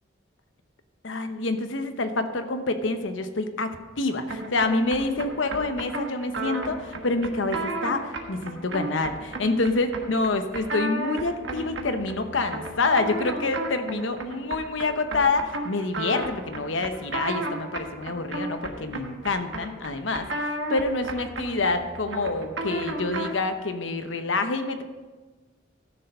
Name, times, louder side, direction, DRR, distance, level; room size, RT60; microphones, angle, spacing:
voice 1, 1.0-24.8, left 3 dB, 90° left, 8 dB, 0.9 m, -27 dB
sound 1, 4.3-23.5, right 2 dB, 75° right, 1.4 m, -33 dB
13.0 x 6.8 x 5.4 m, 1.3 s
head